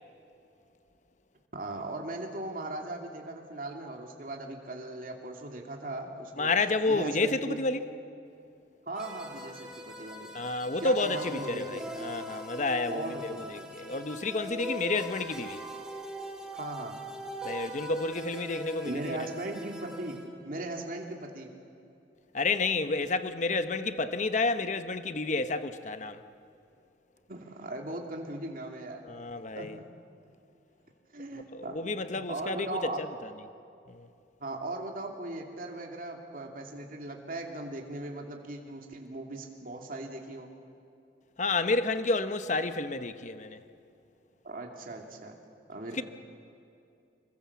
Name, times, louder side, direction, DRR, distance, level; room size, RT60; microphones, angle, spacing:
voice 1, 1.5-6.5 6.9-7.6 8.9-10.3 10.8-12.0 12.9-13.7 16.5-17.0 18.8-20.2 20.4-21.5 27.3-29.0 29.6-29.8 31.1-31.8 32.3-33.0 34.4-40.5 44.4-45.4 45.7-46.0, right 2 dB, 50° right, 2.6 m, -38 dB
voice 2, 6.4-7.8 10.3-13.2 13.5-15.6 17.4-19.2 22.3-26.2 29.0-29.8 31.5-33.1 33.9-34.1 41.4-43.6 45.9-46.0, left 3 dB, 45° left, 1.0 m, -30 dB
sound 1, 9.0-20.2, equal, 5° right, 2.6 m, -41 dB
26.5 x 22.5 x 7.2 m
head